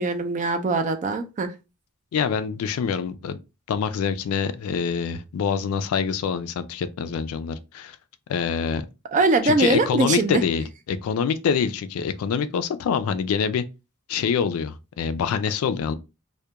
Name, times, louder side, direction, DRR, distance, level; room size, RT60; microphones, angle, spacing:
voice 1, 0.0-1.5 9.1-10.4, right 3 dB, 35° right, 0.4 m, -22 dB
voice 2, 2.1-3.4 3.7-8.0 8.3-8.9 9.4-13.6 14.1-15.9, left 6 dB, 75° left, 0.3 m, -25 dB
2.3 x 2.1 x 2.7 m
head